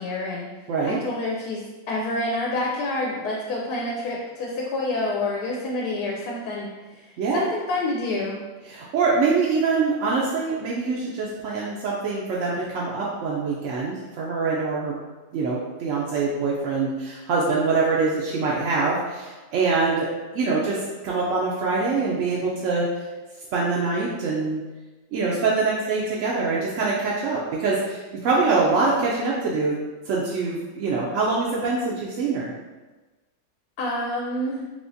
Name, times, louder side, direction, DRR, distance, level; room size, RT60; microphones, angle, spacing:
voice 1, 0.0-8.4 33.8-34.6, left 2 dB, 80° left, -2 dB, 1.1 m, -28 dB
voice 2, 0.7-1.0 7.2-7.5 8.7-15.0 15.3-20.1 20.3-20.8 21.0-22.9 23.5-24.6 25.1-32.5, right 4 dB, 65° right, -5 dB, 0.8 m, -24 dB
3.5 x 2.9 x 2.6 m, 1.2 s
omnidirectional pair, 1.6 m